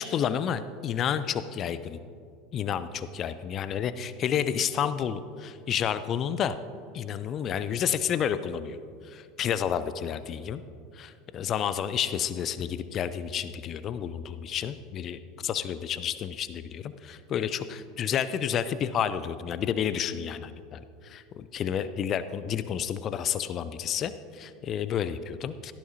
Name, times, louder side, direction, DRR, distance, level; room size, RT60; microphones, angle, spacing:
voice 1, 0.0-2.0 2.5-6.6 6.9-8.8 9.0-10.6 10.9-25.7, left 8 dB, 40° left, 14 dB, 0.6 m, -30 dB
16.5 x 13.5 x 2.8 m, 2.3 s
figure-of-eight pair, 75°, 0 cm